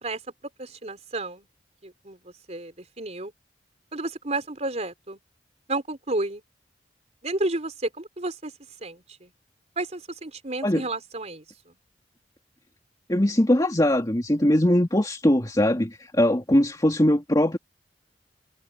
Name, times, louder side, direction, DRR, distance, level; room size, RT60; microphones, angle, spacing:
voice 1, 0.6-1.5 1.8-3.3 3.9-5.2 5.7-6.4 7.2-8.5 8.8-9.3 9.8-11.4, right 2 dB, 40° right, 4.3 m, -31 dB
voice 2, 13.1-17.6, left 1 dB, 20° left, 2.4 m, -21 dB
head